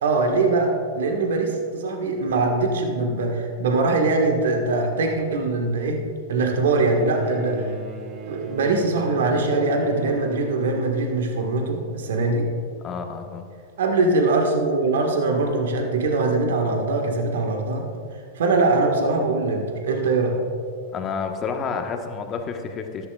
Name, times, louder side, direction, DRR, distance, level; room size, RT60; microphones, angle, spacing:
voice 1, 0.0-6.0 6.3-7.7 8.2-12.5 13.8-17.9 18.3-20.4, right 3 dB, 75° right, 2 dB, 1.5 m, -22 dB
Bowed string instrument, 6.9-12.4 13.5-13.6, right 4 dB, 40° right, 1.2 m, -38 dB
voice 2, 12.8-13.4 20.9-23.1, left 5 dB, 30° left, 4 dB, 1.2 m, -30 dB
13.5 x 12.0 x 2.4 m, 2.3 s
hypercardioid pair, 105°, 0 cm